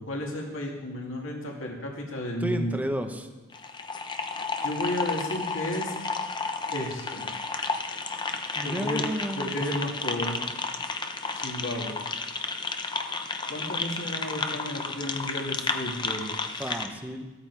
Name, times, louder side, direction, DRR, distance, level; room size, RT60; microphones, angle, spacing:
voice 1, 0.0-2.8 4.6-5.9 6.7-7.3 8.6-9.1 9.4-10.4 11.3-12.0 13.5-16.7, left 1 dB, 60° left, -1 dB, 2.4 m, -33 dB
voice 2, 2.4-3.3 8.5-9.5 16.6-17.3, equal, 5° right, 6 dB, 1.0 m, -32 dB
sound 1, 3.5-16.9, left 4 dB, 20° left, 0.8 m, -32 dB
15.0 x 13.5 x 4.7 m, 1.2 s
head